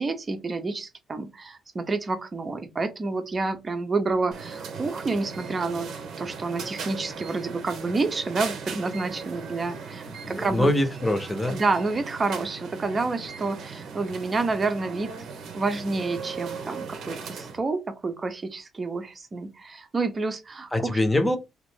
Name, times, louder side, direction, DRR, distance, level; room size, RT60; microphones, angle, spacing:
voice 1, 0.0-5.9 6.2-10.7 11.5-15.1 15.5-21.0, right 3 dB, 35° right, 0.7 m, -29 dB
sound 1, 4.3-17.6, right 5 dB, 75° right, 0.7 m, -38 dB
voice 2, 10.1-11.6 20.7-21.4, left 1 dB, 15° left, 0.8 m, -24 dB
2.9 x 2.5 x 3.5 m
cardioid pair, 90°, 0 cm